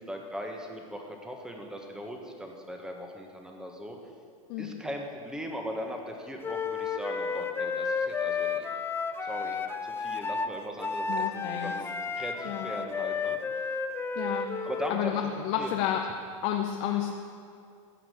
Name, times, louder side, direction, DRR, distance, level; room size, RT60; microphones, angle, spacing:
voice 1, 0.0-4.0 4.6-8.7 9.2-13.4 14.6-15.2 15.6-15.8, equal, 5° right, 2 dB, 1.5 m, -39 dB
Wind instrument woodwind instrument, 6.4-15.0, left 5 dB, 15° left, 0.5 m, -32 dB
voice 2, 11.1-11.7 12.4-12.7 14.1-14.5 14.9-16.0 16.4-17.1, left 10 dB, 50° left, 2 dB, 0.9 m, -30 dB
15.0 x 5.9 x 6.6 m, 2.4 s
hypercardioid pair, 115°, 17 cm